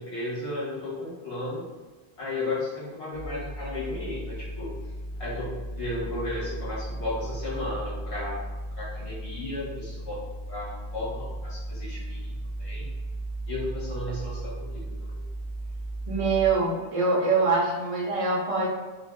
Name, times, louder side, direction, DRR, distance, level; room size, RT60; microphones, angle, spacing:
voice 1, 0.0-1.6 2.2-4.7 5.2-8.4 8.8-10.2 10.5-12.9 13.5-15.2, left 2 dB, 70° left, -7 dB, 1.6 m, -34 dB
sound 1, 3.1-16.5, right 1 dB, 5° right, 0.4 m, -36 dB
voice 2, 16.1-18.7, right 3 dB, 35° right, -4 dB, 0.7 m, -24 dB
2.8 x 2.6 x 3.5 m, 1.3 s
omnidirectional pair, 1.1 m